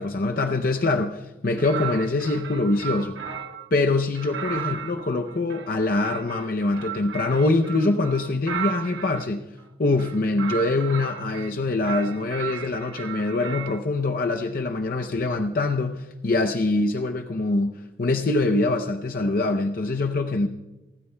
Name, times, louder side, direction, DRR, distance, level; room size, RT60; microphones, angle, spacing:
voice 1, 0.0-3.2 3.7-9.5 9.8-20.5, left 2 dB, 45° left, 5 dB, 0.6 m, -24 dB
sound 1, 1.6-3.7 4.1-9.3 9.9-11.5 11.8-13.8, right 9 dB, 70° right, 0.9 m, -35 dB
29.5 x 15.0 x 2.2 m, 1.2 s
head